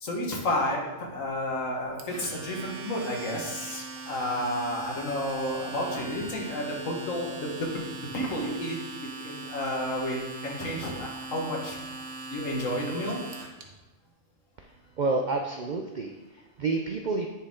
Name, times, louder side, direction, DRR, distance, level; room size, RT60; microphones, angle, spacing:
voice 1, 0.0-8.8 9.2-10.2 10.4-13.2, left 1 dB, 75° left, -1 dB, 1.8 m, -31 dB
Domestic sounds home sounds, 2.0-13.6, right 3 dB, 90° right, 1.3 m, -40 dB
voice 2, 15.0-17.3, right 3 dB, 65° right, 3 dB, 0.4 m, -29 dB
10.0 x 4.4 x 3.7 m, 1.1 s
omnidirectional pair, 1.4 m